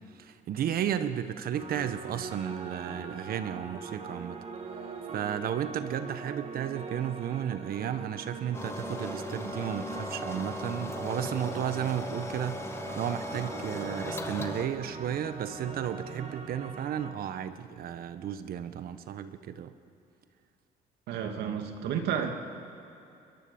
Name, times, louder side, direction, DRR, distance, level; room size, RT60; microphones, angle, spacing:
voice 1, 0.1-4.4 5.1-19.7, right 9 dB, 60° right, 11 dB, 1.3 m, -33 dB
sound 1, 1.5-17.1, right 4 dB, 40° right, 2.2 m, -42 dB
sound 2, 8.5-14.7, left 2 dB, 15° left, 1.7 m, -38 dB
voice 2, 21.1-22.3, right 8 dB, 80° right, 4 dB, 2.5 m, -31 dB
29.5 x 22.0 x 7.2 m, 2.6 s
cardioid pair, 110°, 17 cm